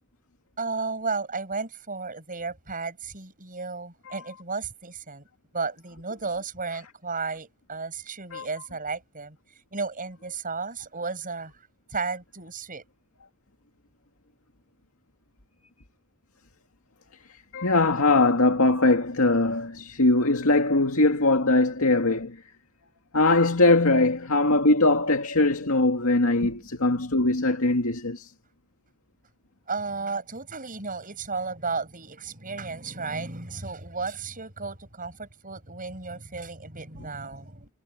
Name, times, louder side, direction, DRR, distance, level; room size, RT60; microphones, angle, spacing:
voice 1, 0.6-5.3 5.5-9.4 9.7-11.5 11.9-12.8 26.4-26.6 29.7-37.7, right 4 dB, 40° right, 7.2 m, -33 dB
voice 2, 17.5-22.4 23.1-26.5 26.8-28.3, left 2 dB, 70° left, 2.3 m, -21 dB
head